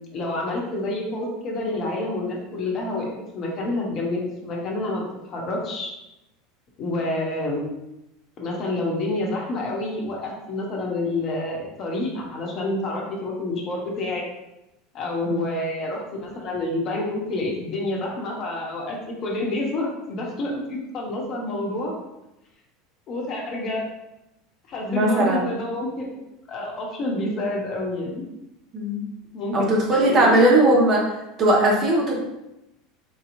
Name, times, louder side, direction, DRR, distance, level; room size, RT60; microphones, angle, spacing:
voice 1, 0.1-3.1 3.3-5.9 6.8-7.7 8.4-14.2 14.9-21.9 23.1-23.8 24.7-26.2 26.5-28.2 29.3-30.4, left 2 dB, 45° left, -1 dB, 0.9 m, -28 dB
voice 2, 24.9-25.4 28.7-29.0 29.5-31.1 31.4-32.2, right 1 dB, 40° right, -2 dB, 1.0 m, -19 dB
3.9 x 2.8 x 2.6 m, 0.92 s
figure-of-eight pair, 75°, 0 cm